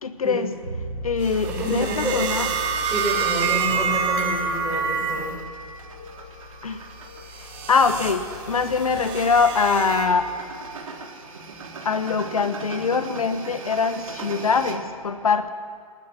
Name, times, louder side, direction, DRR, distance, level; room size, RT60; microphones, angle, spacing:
voice 1, 0.0-0.5 1.0-2.5 6.6-6.8 7.7-10.3 11.8-15.5, left 5 dB, 70° left, 11 dB, 1.3 m, -23 dB
Bass guitar, 0.6-10.5, left 1 dB, 80° right, 5.4 m, -40 dB
sound 1, 1.2-5.4 5.8-6.2 6.9-10.1, right 6 dB, 40° right, 5.9 m, -28 dB
sound 2, 1.2-14.8, right 4 dB, 65° right, 3.8 m, -41 dB
voice 2, 1.5-2.2 2.9-5.3, equal, 10° right, -3 dB, 7.7 m, -28 dB
30.0 x 19.0 x 6.2 m, 2.2 s
figure-of-eight pair, 125°, 19 cm